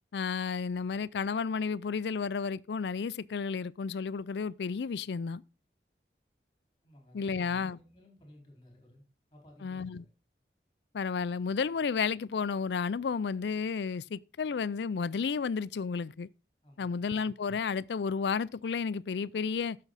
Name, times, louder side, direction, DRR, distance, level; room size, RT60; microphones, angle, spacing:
voice 1, 0.1-5.4 7.1-7.8 9.6-10.0 10.9-16.3 16.8-19.8, left 5 dB, 75° left, 0.4 m, -32 dB
voice 2, 6.8-9.0 9.3-10.1 16.6-17.1, equal, 25° left, 4.4 m, -57 dB
11.0 x 6.7 x 4.0 m
head